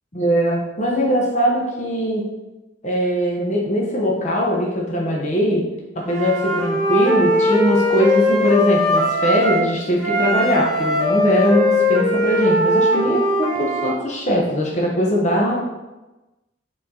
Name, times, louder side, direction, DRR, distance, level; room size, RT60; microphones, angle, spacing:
voice 1, 0.2-2.2 2.8-5.6 5.9-15.6, equal, 40° left, -2 dB, 1.1 m, -20 dB
Wind instrument woodwind instrument, 6.0-9.7 10.0-13.9, left 1 dB, ahead, 1.8 m, -19 dB
7.3 x 3.9 x 4.3 m, 1.1 s
head